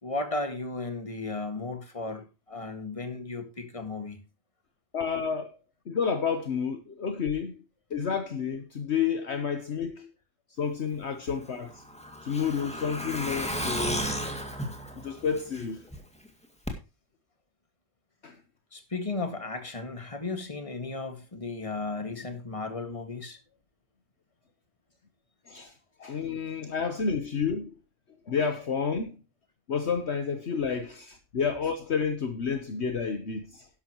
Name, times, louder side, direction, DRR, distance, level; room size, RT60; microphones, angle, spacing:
voice 1, 0.0-4.2 18.7-23.4, left 3 dB, 25° left, 1.9 m, -35 dB
voice 2, 4.9-5.6 5.9-7.6 7.9-10.1 10.6-11.8 12.2-14.1 14.9-15.8 18.2-18.4 25.5-25.7 26.0-27.7 28.3-29.1 29.7-33.7, left 6 dB, 60° left, 1.3 m, -30 dB
Truck, 11.3-16.0 16.3-16.4 16.7-16.8, equal, 5° left, 2.2 m, -34 dB
12.5 x 11.0 x 3.0 m
omnidirectional pair, 1.3 m